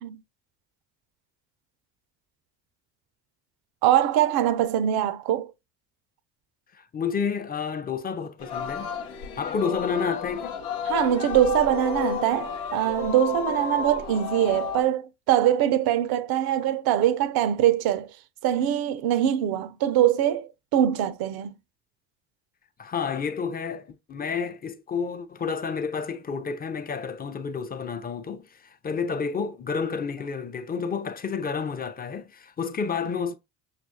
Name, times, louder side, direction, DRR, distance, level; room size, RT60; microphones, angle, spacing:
voice 1, 3.8-5.5 10.8-18.1 18.4-21.5, right 11 dB, 55° right, 0.6 m, -23 dB
voice 2, 6.7-8.9 9.4-10.6 22.8-33.3, left 5 dB, 20° left, 0.5 m, -30 dB
Singing, 8.4-14.8, left 8 dB, 80° left, 0.7 m, -32 dB
5.9 x 2.4 x 2.7 m
hypercardioid pair, 55°, 44 cm